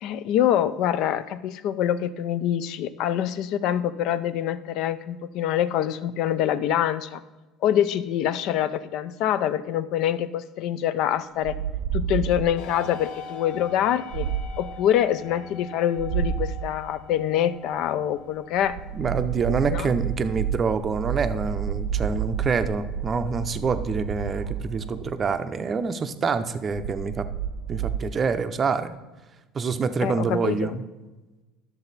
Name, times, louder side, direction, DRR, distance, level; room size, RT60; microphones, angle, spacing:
voice 1, 0.0-7.2 7.6-11.6 11.9-14.3 14.6-18.8 19.7-19.9 30.0-30.8, left 10 dB, 60° left, 14 dB, 0.5 m, -25 dB
sound 1, 11.4-12.7 14.1-14.7 16.0-16.7 18.6-25.3 26.7-28.0, right 8 dB, 75° right, 0.5 m, -30 dB
sound 2, 12.6-26.2, left 5 dB, 80° left, 0.9 m, -45 dB
voice 2, 18.9-27.3 27.7-28.9 29.5-30.8, right 5 dB, 25° right, 10 dB, 0.6 m, -26 dB
11.5 x 6.9 x 4.1 m, 1.2 s
cardioid pair, 135°, 0 cm